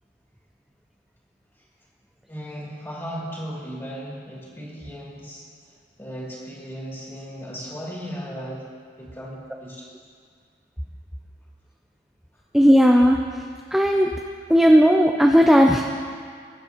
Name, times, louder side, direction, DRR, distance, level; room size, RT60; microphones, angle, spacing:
voice 1, 2.3-5.4 6.0-8.6 9.0-9.9, equal, 15° left, -6 dB, 2.6 m, -36 dB
voice 2, 12.5-13.2 13.7-14.1 14.5-15.8, equal, 5° right, 1 dB, 0.4 m, -15 dB
21.5 x 8.1 x 2.9 m, 2.1 s
head